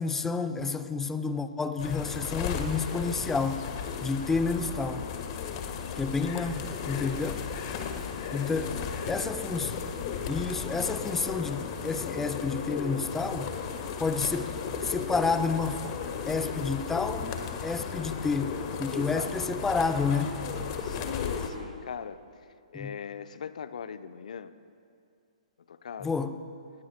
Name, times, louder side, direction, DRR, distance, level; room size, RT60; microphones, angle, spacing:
voice 1, 0.0-3.7 4.0-5.1 6.0-7.5 8.3-8.8 9.1-9.7 10.3-13.5 14.0-14.5 14.8-15.8 16.3-20.4 22.7-23.0 26.0-26.4, left 4 dB, 10° left, 9 dB, 0.6 m, -30 dB
sound 1, 1.8-21.5, left 6 dB, 40° left, 1.4 m, -35 dB
voice 2, 5.6-6.4 7.7-8.0 8.3-9.2 19.1-19.3 20.8-22.2 22.7-24.6 25.7-26.2, left 7 dB, 70° left, 12 dB, 0.6 m, -41 dB
22.0 x 19.5 x 2.2 m, 2.4 s
hypercardioid pair, 130°, 4 cm